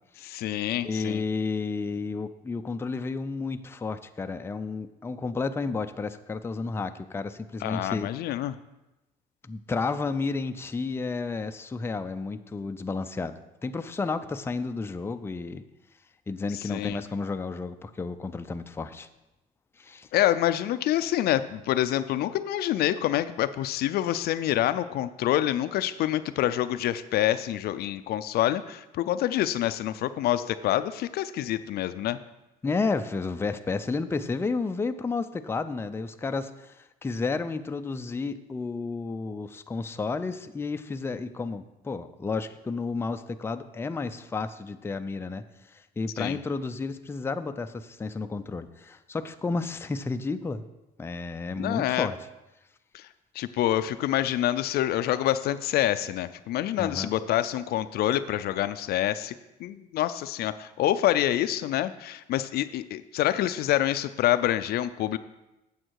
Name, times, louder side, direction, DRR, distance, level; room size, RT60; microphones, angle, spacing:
voice 1, 0.2-1.2 7.6-8.5 16.5-17.0 20.1-32.2 46.2-46.4 51.6-52.1 52.9-53.1 53.3-59.3 59.6-65.2, left 13 dB, 70° left, 12 dB, 0.5 m, -27 dB
voice 2, 0.8-8.1 9.4-13.3 13.6-15.6 16.3-19.1 19.8-20.1 32.6-50.6 51.0-52.2 56.8-57.1, left 4 dB, 15° left, 8 dB, 0.4 m, -32 dB
8.8 x 7.2 x 4.7 m, 0.98 s
cardioid pair, 110°, 17 cm